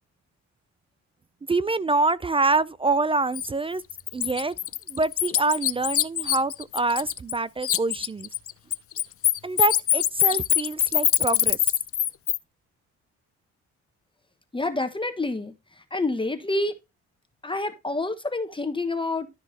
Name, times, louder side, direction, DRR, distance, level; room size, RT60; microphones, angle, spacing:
voice 1, 1.5-3.8 4.1-4.5 4.9-8.3 9.4-11.6, right 3 dB, 20° right, 0.4 m, -25 dB
Bird, 3.3-3.5 3.9-7.4 7.6-12.4, left 11 dB, 50° left, 0.5 m, -23 dB
voice 2, 14.5-15.5 15.9-16.7 17.4-19.3, left 2 dB, 15° left, 1.2 m, -28 dB
13.0 x 4.7 x 3.3 m
cardioid pair, 90°, 30 cm